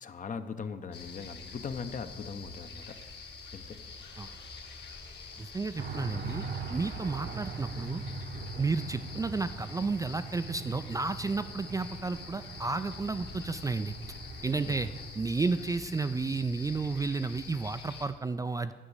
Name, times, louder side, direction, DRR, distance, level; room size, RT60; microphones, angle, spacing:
voice 1, 0.0-3.0 3.5-3.8 14.6-14.8, left 5 dB, 40° left, 10 dB, 0.7 m, -40 dB
sound 1, 0.9-18.1, left 4 dB, 60° left, 1.7 m, -46 dB
voice 2, 5.4-8.0 8.6-13.9 14.4-14.9 15.2-18.7, right 3 dB, 15° right, 10 dB, 0.3 m, -32 dB
sound 2, 5.8-15.1, right 4 dB, 55° right, 0.9 m, -41 dB
9.8 x 5.1 x 8.1 m, 1.4 s
cardioid pair, 90°, 20 cm